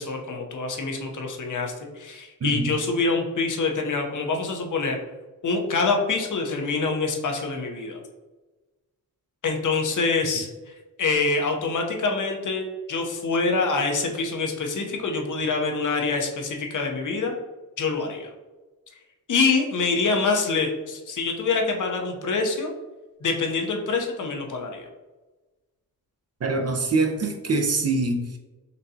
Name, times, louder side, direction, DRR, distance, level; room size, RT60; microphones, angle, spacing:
voice 1, 0.0-5.0 5.4-8.0 9.4-10.5 11.0-17.3 17.8-18.3 19.3-22.7 23.2-24.9, left 4 dB, 55° left, 2 dB, 0.7 m, -25 dB
voice 2, 26.4-28.4, right 3 dB, 45° right, 4 dB, 0.6 m, -24 dB
4.0 x 2.2 x 2.7 m, 1.2 s
cardioid pair, 55°, 36 cm